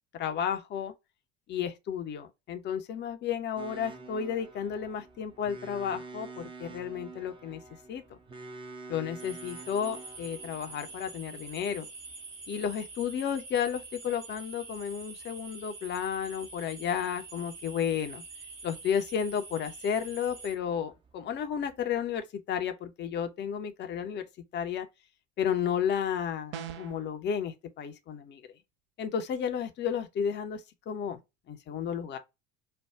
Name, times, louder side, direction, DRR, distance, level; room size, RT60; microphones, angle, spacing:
voice 1, 0.1-0.9 1.5-7.6 7.9-8.0 8.9-11.9 12.5-18.2 18.6-24.2 24.5-24.9 25.4-28.4 29.0-30.6 30.9-31.2 31.5-32.2, left 8 dB, 30° left, 0.7 m, -32 dB
sound 1, 3.6-22.0, right 3 dB, 15° right, 0.6 m, -49 dB
sound 2, 9.2-20.5, right 3 dB, 75° right, 2.6 m, -46 dB
sound 3, 26.5-27.1, right 9 dB, 55° right, 0.6 m, -40 dB
4.4 x 2.3 x 3.4 m
figure-of-eight pair, 70°, 38 cm